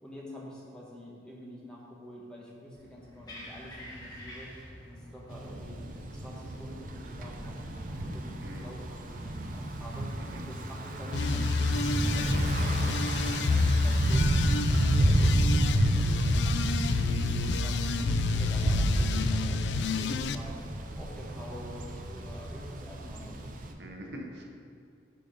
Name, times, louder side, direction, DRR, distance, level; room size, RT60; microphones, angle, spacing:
voice 1, 0.0-4.5 4.9-5.8 6.1-13.1 13.4-16.9 17.2-17.9 18.3-19.6 20.0-23.5, equal, 5° left, -5 dB, 1.2 m, -47 dB
sound 1, 2.7-18.7, equal, 20° left, 1.4 m, -50 dB
Thunder / Bicycle, 5.3-23.7, right 1 dB, 50° right, 0.6 m, -30 dB
voice 2, 8.4-8.8 10.2-10.4 15.0-15.1 23.8-24.4, right 1 dB, 70° right, 1 dB, 0.9 m, -44 dB
sound 2, 11.1-20.3, left 4 dB, 75° left, 0.3 m, -30 dB
6.8 x 5.2 x 5.1 m, 2.5 s
head